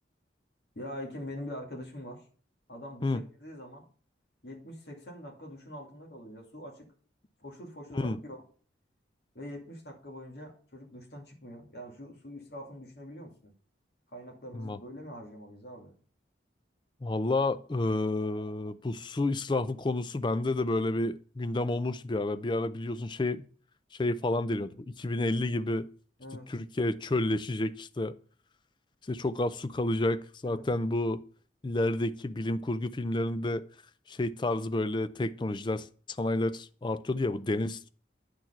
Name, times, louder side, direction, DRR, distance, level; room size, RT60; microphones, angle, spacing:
voice 1, 0.7-2.2 2.7-3.9 4.4-6.9 7.4-8.4 9.3-13.5 14.1-15.9 26.2-26.5 30.4-30.7, left 1 dB, 60° left, 2.4 m, -44 dB
voice 2, 17.0-23.5 24.0-25.9 26.5-28.1 29.1-31.2 31.6-33.6 34.1-35.9 36.2-37.9, left 2 dB, 25° left, 0.4 m, -30 dB
9.3 x 4.6 x 5.7 m
head